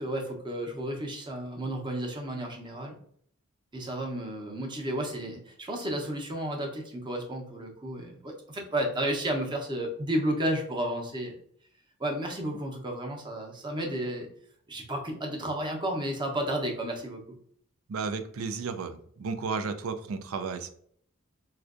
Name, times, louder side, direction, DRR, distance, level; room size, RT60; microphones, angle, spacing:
voice 1, 0.0-3.0 3.7-11.3 12.0-14.3 14.7-17.4, right 1 dB, 20° right, 1 dB, 0.7 m, -32 dB
voice 2, 17.9-20.8, right 4 dB, 85° right, 10 dB, 0.4 m, -33 dB
4.3 x 2.5 x 2.4 m, 0.62 s
head